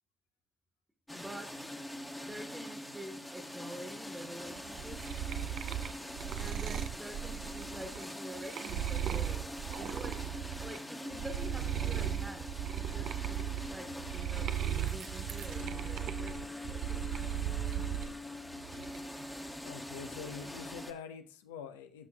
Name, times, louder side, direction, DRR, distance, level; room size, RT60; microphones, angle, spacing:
sound 1, 1.1-20.9, left 1 dB, 10° left, 1.1 m, -43 dB
voice 1, 1.1-1.6 2.2-5.0 6.4-14.5 14.9-17.1, right 1 dB, 15° right, 4 dB, 1.2 m, -47 dB
sound 2, 4.6-10.8 11.1-18.1 18.5-19.2, right 11 dB, 65° right, 0.3 m, -37 dB
voice 2, 19.6-22.1, left 7 dB, 85° left, 9 dB, 0.5 m, -45 dB
10.5 x 6.0 x 2.2 m, 0.42 s
hypercardioid pair, 45°, 0 cm